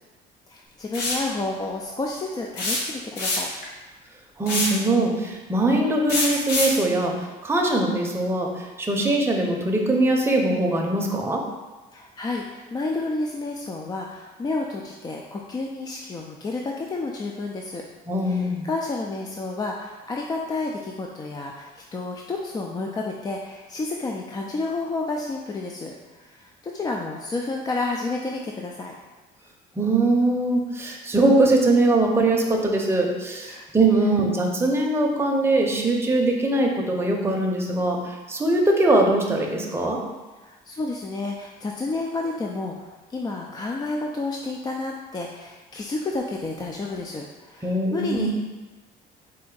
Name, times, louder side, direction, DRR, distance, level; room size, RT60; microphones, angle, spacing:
voice 1, 0.5-3.5 11.9-17.8 18.2-28.9 33.4-33.7 40.4-48.3, left 3 dB, 25° left, -1 dB, 0.3 m, -30 dB
sound 1, 0.9-1.3 2.6-3.6 4.5-4.8 6.1-6.8, left 2 dB, 85° left, 1.0 m, -25 dB
voice 2, 4.4-7.2 7.4-8.5 8.8-11.4 18.1-18.7 29.8-40.0 47.6-48.3, right 2 dB, 15° right, 0 dB, 0.6 m, -21 dB
4.3 x 2.6 x 3.8 m, 1.2 s
cardioid pair, 110°, 17 cm